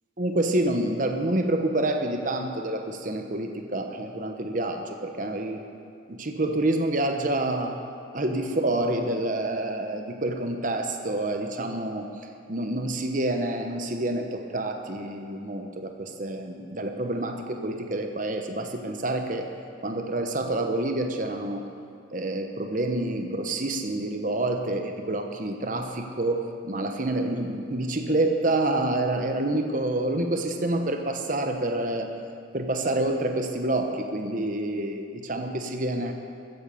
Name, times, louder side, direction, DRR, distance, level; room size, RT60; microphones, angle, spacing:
voice 1, 0.2-5.6 6.1-7.8 8.1-19.5 19.8-21.6 22.1-32.1 32.5-36.1, right 1 dB, 40° right, 4 dB, 1.0 m, -28 dB
14.5 x 10.0 x 7.0 m, 2.4 s
head